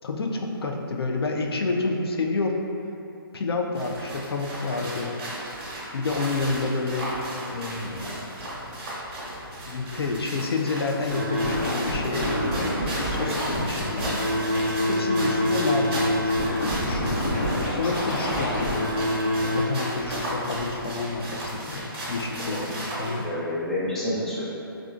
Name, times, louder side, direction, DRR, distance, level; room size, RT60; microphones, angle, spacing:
voice 1, 0.0-2.6 3.3-5.1 5.9-7.1 7.5-8.1 9.7-12.7 13.0-14.2 14.9-19.0 19.4-23.3, left 3 dB, 90° left, 2 dB, 0.4 m, -29 dB
sound 1, 3.7-23.2, right 1 dB, 30° right, 0.8 m, -35 dB
Scratching (performance technique), 11.1-19.6, left 1 dB, 25° left, 0.8 m, -26 dB
voice 2, 22.3-22.6 23.0-24.4, left 1 dB, 5° left, -10 dB, 0.3 m, -29 dB
3.7 x 2.3 x 2.3 m, 2.8 s
hypercardioid pair, 155°, 13 cm